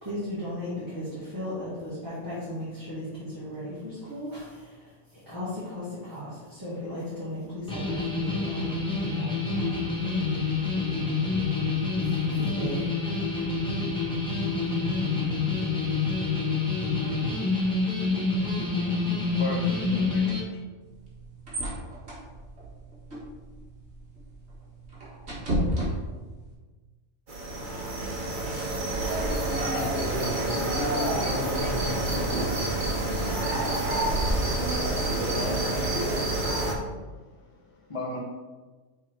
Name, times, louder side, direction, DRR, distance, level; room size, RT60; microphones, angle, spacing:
voice 1, 0.0-9.7 12.0-12.9, equal, 15° right, -10 dB, 1.7 m, -36 dB
sound 1, 7.7-20.4, left 4 dB, 5° left, 1.1 m, -27 dB
voice 2, 19.4-20.4 36.2-38.2, left 2 dB, 30° left, -2 dB, 0.7 m, -38 dB
sound 2, 20.8-26.5, equal, 60° right, 1.9 m, -34 dB
sound 3, 27.3-36.7, right 1 dB, 45° right, 1.1 m, -28 dB
voice 3, 29.3-32.2, left 1 dB, 60° left, -2 dB, 1.4 m, -34 dB
6.3 x 3.6 x 4.5 m, 1.3 s
omnidirectional pair, 1.2 m